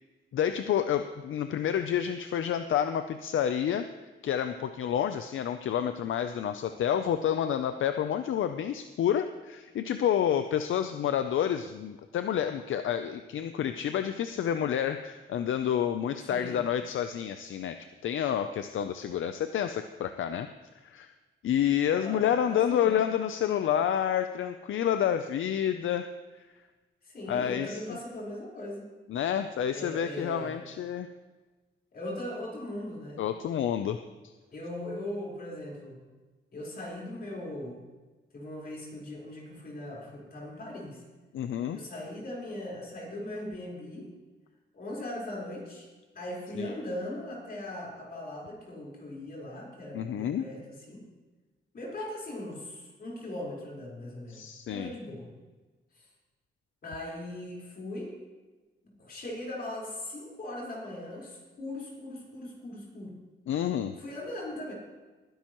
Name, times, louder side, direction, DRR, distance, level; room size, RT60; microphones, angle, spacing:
voice 1, 0.3-3.9 4.2-17.8 18.0-20.5 20.8-21.1 21.4-26.1 26.3-26.4 27.3-27.8 29.1-31.1 33.2-34.0 41.3-41.8 46.6-46.7 49.9-50.4 54.3-54.9 63.5-64.0, left 9 dB, 70° left, 9 dB, 0.6 m, -29 dB
voice 2, 16.3-16.6 22.0-23.0 27.0-28.9 29.7-30.5 31.9-33.2 34.5-36.0 36.5-37.8 38.3-41.0 41.7-44.1 44.7-45.9 46.1-50.6 50.9-51.1 51.7-54.4 54.7-55.3 56.0-56.1 56.8-58.1 58.8-63.1 64.0-64.7, left 1 dB, 45° left, -3 dB, 4.5 m, -39 dB
20.5 x 10.5 x 3.1 m, 1.3 s
cardioid pair, 125°, 21 cm